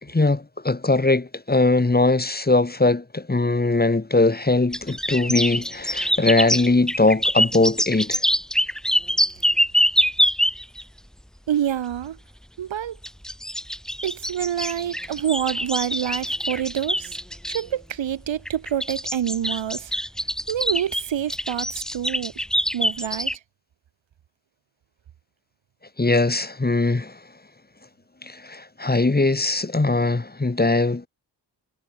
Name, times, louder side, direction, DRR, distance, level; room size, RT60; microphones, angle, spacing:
voice 1, 0.0-8.2 26.0-27.2 28.2-31.1, left 2 dB, 20° left, 2.5 m, -21 dB
sound 1, 4.7-10.8 13.0-17.6 18.5-23.4, equal, ahead, 2.1 m, -24 dB
voice 2, 11.5-12.2 12.6-13.0 14.0-17.1 17.5-19.9 20.5-22.3 22.7-23.3, right 10 dB, 65° right, 2.9 m, -27 dB
supercardioid pair, 50°, 48 cm